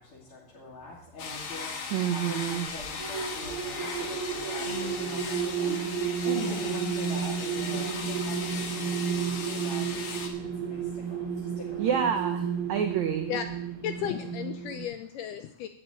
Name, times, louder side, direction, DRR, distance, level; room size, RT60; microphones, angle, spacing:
voice 1, 0.0-11.9, left 2 dB, 35° left, -8 dB, 3.5 m, -43 dB
sound 1, 1.2-10.3, left 5 dB, 60° left, 1.3 m, -37 dB
voice 2, 1.9-2.7 11.8-13.3, right 8 dB, 80° right, 5 dB, 1.6 m, -28 dB
sound 2, 2.8-14.8, right 7 dB, 45° right, 2.2 m, -32 dB
voice 3, 13.8-15.7, left 9 dB, 80° left, 8 dB, 2.0 m, -34 dB
12.5 x 5.8 x 9.0 m, 0.65 s
omnidirectional pair, 4.4 m